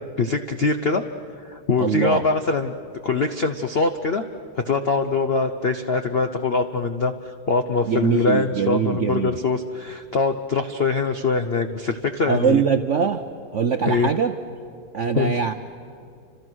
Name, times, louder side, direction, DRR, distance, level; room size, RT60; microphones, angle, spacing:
voice 1, 0.2-1.0 1.4-2.7 3.0-4.2 4.6-12.6 13.9-14.1 15.1-15.4, left 4 dB, 65° left, 7 dB, 0.5 m, -23 dB
voice 2, 1.8-2.2 7.8-9.4 12.3-13.2 13.5-14.3 14.9-15.5, right 6 dB, 65° right, 7 dB, 0.7 m, -22 dB
30.0 x 26.0 x 6.3 m, 2.5 s
omnidirectional pair, 2.2 m